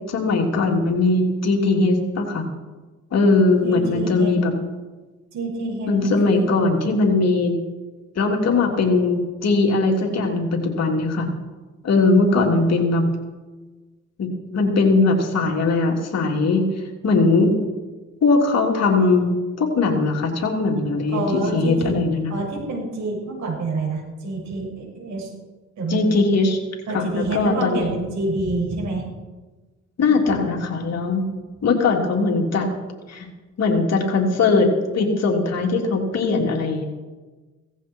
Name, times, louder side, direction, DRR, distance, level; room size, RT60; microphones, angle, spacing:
voice 1, 0.1-2.4 3.1-4.5 5.9-7.6 8.1-11.3 11.8-13.0 14.2-16.7 17.0-17.5 18.2-22.3 25.9-26.6 26.9-27.9 30.0-31.3 31.6-32.7 33.1-33.3 33.6-34.7 34.9-36.8, left 3 dB, 60° left, 1 dB, 3.4 m, -20 dB
voice 2, 3.6-4.4 5.3-6.7 21.1-21.9 22.3-25.3 25.8-26.0 26.9-29.1, right 2 dB, 65° right, -1 dB, 6.8 m, -27 dB
17.5 x 15.5 x 4.7 m, 1.3 s
cardioid pair, 90°, 30 cm